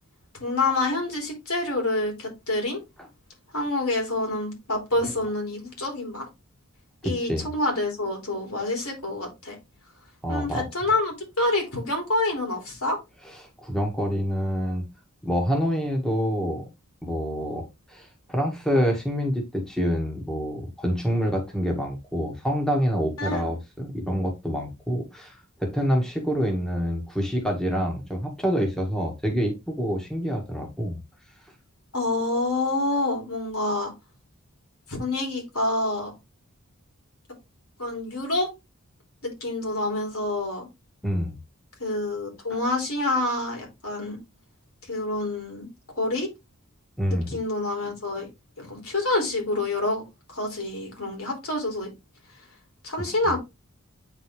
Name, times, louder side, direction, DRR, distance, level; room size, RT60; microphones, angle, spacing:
voice 1, 0.4-2.8 3.5-6.3 7.0-9.6 10.3-13.0 23.2-23.5 31.9-33.9 34.9-36.1 37.8-38.5 39.2-40.7 41.8-44.2 44.9-45.7 46.0-46.3 47.1-48.3 48.6-50.0 50.3-51.9 52.8-53.4, left 2 dB, 85° left, 0 dB, 3.5 m, -27 dB
voice 2, 7.0-7.5 10.2-10.6 13.6-14.8 15.2-16.6 17.0-31.0 41.0-41.4 47.0-47.4, equal, 5° left, 1 dB, 1.5 m, -27 dB
8.9 x 4.0 x 3.2 m, 0.23 s
head